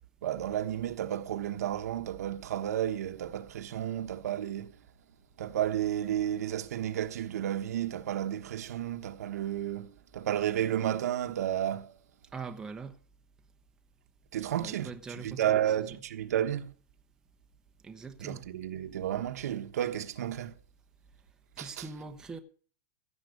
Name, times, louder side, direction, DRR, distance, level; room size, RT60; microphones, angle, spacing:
voice 1, 0.2-4.7 5.4-11.9 14.3-16.7 18.2-20.5 21.6-21.8, right 11 dB, 75° right, 1.3 m, -32 dB
voice 2, 12.3-13.0 14.6-15.6 15.9-16.0 17.8-18.5 21.6-22.4, right 4 dB, 10° right, 0.9 m, -42 dB
16.0 x 7.5 x 6.6 m
supercardioid pair, 165°, 9 cm